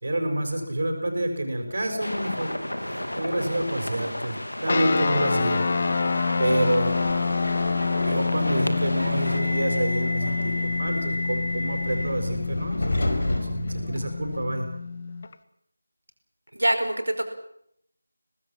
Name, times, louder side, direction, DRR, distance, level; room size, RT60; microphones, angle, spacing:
voice 1, 0.0-4.4 4.6-5.6 6.4-7.2 7.7-14.7, right 1 dB, 50° right, 5 dB, 5.9 m, -28 dB
sound 1, 2.0-9.4, left 1 dB, 70° left, 3.2 m, -33 dB
sound 2, 4.7-15.3, left 4 dB, 35° left, 1.0 m, -27 dB
Subway metro underground, 6.8-14.4, left 1 dB, 50° left, 5.2 m, -31 dB
voice 2, 16.5-17.2, right 1 dB, 75° right, 6 dB, 5.0 m, -24 dB
24.5 x 19.0 x 7.3 m, 0.71 s
figure-of-eight pair, 165°, 0 cm